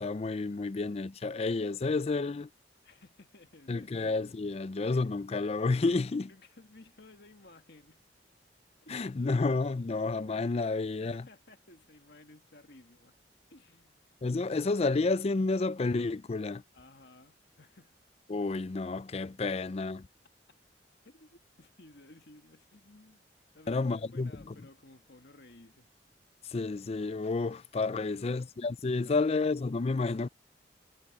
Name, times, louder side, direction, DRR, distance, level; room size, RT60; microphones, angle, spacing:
voice 1, 0.0-2.5 3.7-6.3 8.9-11.3 14.2-16.6 18.3-20.1 23.7-24.5 26.5-30.3, left 3 dB, 35° left, 0.4 m, -30 dB
voice 2, 2.8-4.1 6.3-8.0 8.8-9.2 11.0-13.2 13.5-14.1 16.7-17.9 21.0-23.3 23.5-25.9 28.1-28.5 29.0-29.4, left 2 dB, 65° left, 1.9 m, -56 dB
head